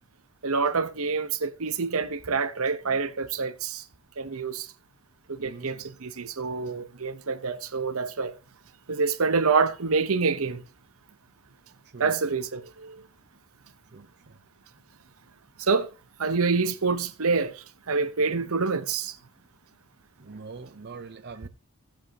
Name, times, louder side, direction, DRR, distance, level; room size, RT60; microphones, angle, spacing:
voice 1, 0.4-3.8 4.2-4.7 5.3-8.3 8.9-10.6 12.0-13.0 15.6-15.9 16.2-19.2, right 4 dB, 70° right, 1.0 m, -27 dB
voice 2, 5.4-5.9 11.9-12.2 13.9-14.4 20.2-21.5, right 4 dB, 50° right, 0.7 m, -43 dB
16.5 x 7.4 x 2.9 m
head